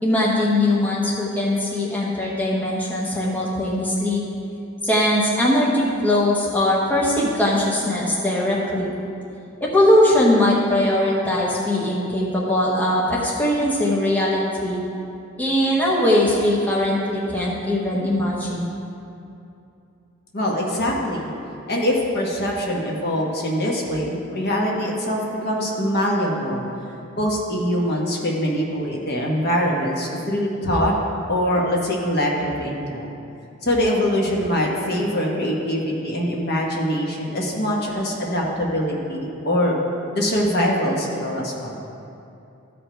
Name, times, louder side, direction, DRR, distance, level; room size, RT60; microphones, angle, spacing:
voice 1, 0.0-4.2 4.8-8.9 9.6-14.8 15.4-18.7, left 1 dB, 10° left, -6 dB, 1.0 m, -20 dB
voice 2, 20.3-21.3 21.7-26.6 27.2-30.9 31.3-33.1 33.6-39.8 40.1-41.8, equal, 50° left, -2 dB, 1.3 m, -23 dB
14.0 x 5.1 x 4.5 m, 2.7 s
head